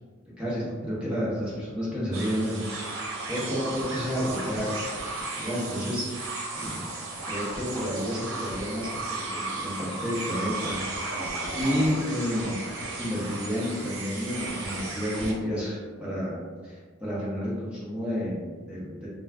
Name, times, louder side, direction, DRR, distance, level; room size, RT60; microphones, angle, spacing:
voice 1, 0.4-2.6 3.3-4.7 4.9-5.1 5.4-6.9 7.2-11.2 11.5-12.6 13.0-19.1, equal, 5° right, -9 dB, 0.6 m, -30 dB
sound 1, 2.1-15.3, right 2 dB, 90° right, 0.6 m, -34 dB
2.3 x 2.3 x 3.2 m, 1.5 s
head